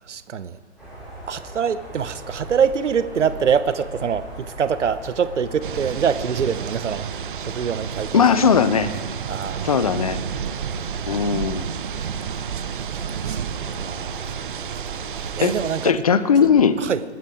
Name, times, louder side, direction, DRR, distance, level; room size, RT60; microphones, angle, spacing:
voice 1, 0.1-0.6 1.3-7.1 7.4-8.2 9.3-9.8 13.3-13.4 13.8-14.3 15.4-16.0 16.8-17.0, right 7 dB, 75° right, 15 dB, 0.9 m, -24 dB
sound 1, 0.8-15.6, right 1 dB, ahead, 5.2 m, -39 dB
sound 2, 5.6-15.9, right 8 dB, 45° right, 0.6 m, -31 dB
voice 2, 8.1-8.9 9.6-10.2 11.1-11.7 15.4-15.5 15.8-16.9, left 6 dB, 30° left, 14 dB, 0.5 m, -18 dB
20.5 x 13.5 x 5.0 m, 1.5 s
hypercardioid pair, 145°, 36 cm